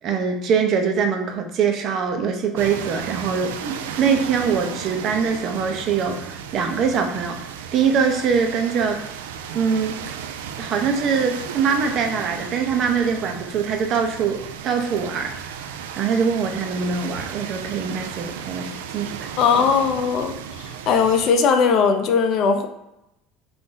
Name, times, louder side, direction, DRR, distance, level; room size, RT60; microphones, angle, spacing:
voice 1, 0.0-7.4 7.7-9.0 9.5-10.0 10.6-15.4 16.0-19.3, right 6 dB, 50° right, 4 dB, 0.7 m, -23 dB
sound 1, 2.6-21.3, right 8 dB, 75° right, 0.3 m, -34 dB
voice 2, 19.4-20.3 20.9-22.7, left 6 dB, 55° left, 5 dB, 0.6 m, -18 dB
3.8 x 2.6 x 3.8 m, 0.89 s
hypercardioid pair, 70°, 0 cm